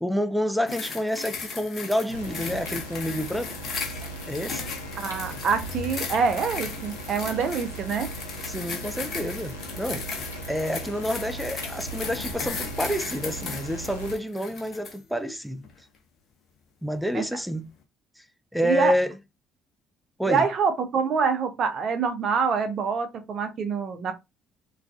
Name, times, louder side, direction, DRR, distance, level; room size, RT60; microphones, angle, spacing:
voice 1, 0.0-3.6 4.3-4.6 8.5-10.1 10.4-15.6 16.8-17.7 18.5-19.2 20.2-20.5, equal, ahead, 0.4 m, -28 dB
sound 1, 0.7-15.0 15.6-15.8, left 5 dB, 50° left, 0.7 m, -37 dB
sound 2, 2.1-14.1, right 1 dB, 85° left, 0.5 m, -38 dB
voice 2, 5.0-8.1 17.1-17.2 18.6-18.9 20.3-24.1, right 5 dB, 50° right, 0.5 m, -25 dB
2.3 x 2.3 x 2.4 m
figure-of-eight pair, 50°, 0 cm